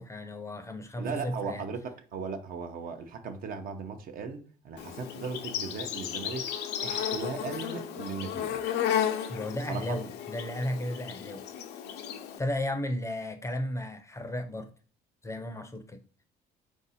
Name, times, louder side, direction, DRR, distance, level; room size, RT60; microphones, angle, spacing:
voice 1, 0.0-1.6 9.3-11.4 12.4-14.7 15.2-16.0, left 1 dB, 15° left, 0.5 m, -34 dB
voice 2, 1.0-6.5 6.8-8.6 9.7-10.0, right 5 dB, 60° right, 0.7 m, -37 dB
Insect, 4.8-12.4, left 9 dB, 80° left, 0.6 m, -34 dB
4.6 x 2.6 x 4.1 m
cardioid pair, 110°, 17 cm